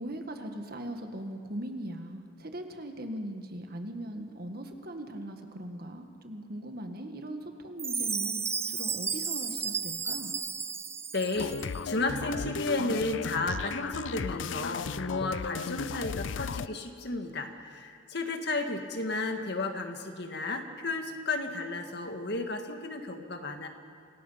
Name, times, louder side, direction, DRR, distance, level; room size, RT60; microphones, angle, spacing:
voice 1, 0.0-8.4 8.7-10.3, right 1 dB, 55° right, 5 dB, 1.8 m, -39 dB
Chime, 7.8-11.8, right 5 dB, 15° right, 0.4 m, -33 dB
voice 2, 11.1-23.7, left 2 dB, 60° left, 5 dB, 1.9 m, -33 dB
sound 1, 11.4-16.7, left 5 dB, 80° left, 0.5 m, -35 dB
27.0 x 17.5 x 5.8 m, 2.5 s
head